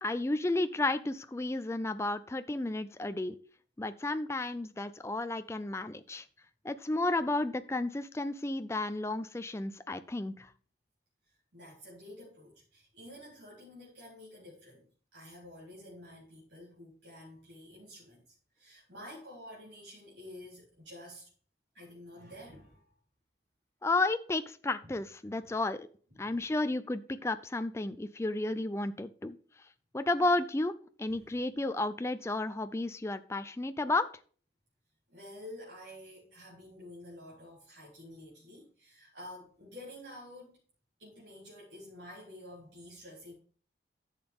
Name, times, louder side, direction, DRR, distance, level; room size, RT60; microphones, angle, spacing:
voice 1, 0.0-3.4 3.8-6.2 6.6-10.5 23.8-25.9 26.2-29.4 29.9-34.1, left 2 dB, 15° left, 11 dB, 0.4 m, -32 dB
voice 2, 11.2-14.9 15.1-21.3 21.7-22.9 24.8-24.9 26.1-26.3 31.1-31.4 35.1-40.6 41.0-43.3, left 1 dB, 80° right, -6 dB, 3.7 m, -50 dB
10.5 x 7.0 x 3.5 m, 0.43 s
head